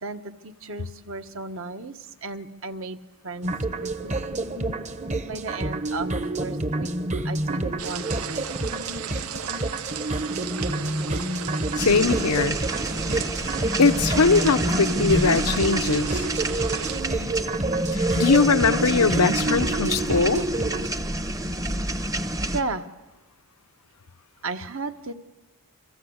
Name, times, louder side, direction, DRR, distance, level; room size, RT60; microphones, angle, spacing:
voice 1, 0.0-3.0 3.2-3.5 4.0-4.2 5.2-6.1 6.4-6.9 7.2-8.5 22.5-22.9 24.4-25.1, right 3 dB, 60° right, 1.4 m, -34 dB
sound 1, 3.4-20.9, right 2 dB, 30° right, 1.1 m, -28 dB
sound 2, 7.8-17.0, right 8 dB, 80° right, 0.9 m, -36 dB
voice 2, 11.8-12.6 13.8-16.2 17.9-20.4, left 4 dB, 90° left, 0.8 m, -21 dB
sound 3, 11.8-22.6, right 1 dB, 15° right, 0.9 m, -29 dB
29.5 x 24.5 x 8.0 m
head